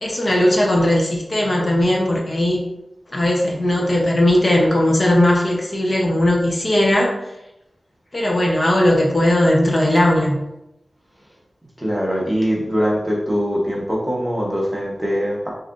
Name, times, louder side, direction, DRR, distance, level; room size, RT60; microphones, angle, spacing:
voice 1, 0.0-2.6 3.1-7.2 8.1-10.4, left 1 dB, 35° left, -2 dB, 1.0 m, -18 dB
voice 2, 11.8-15.5, equal, 15° right, -3 dB, 1.0 m, -22 dB
7.1 x 2.8 x 2.6 m, 0.90 s
wide cardioid pair, 100°, 0 cm